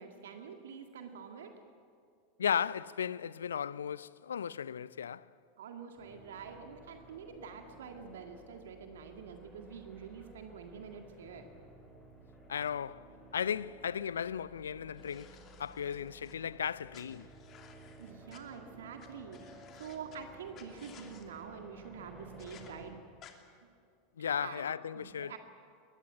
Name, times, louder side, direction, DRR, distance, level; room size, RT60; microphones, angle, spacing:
voice 1, 0.0-1.5 5.6-11.5 18.0-23.0 24.4-24.6 24.9-25.4, right 6 dB, 70° right, 1.8 m, -47 dB
voice 2, 2.4-5.3 12.5-13.1 13.3-15.3 15.6-17.3 24.2-25.3, left 8 dB, 75° left, 0.5 m, -35 dB
sound 1, 6.0-22.9, right 1 dB, 10° left, 7.8 m, -55 dB
sound 2, 15.0-16.3 16.9-18.4 19.0-19.1 19.3-20.2 20.5-21.2 22.4-22.7 23.2-23.3, left 9 dB, 40° left, 2.8 m, -57 dB
22.0 x 20.0 x 9.2 m
figure-of-eight pair, 85°, 0 cm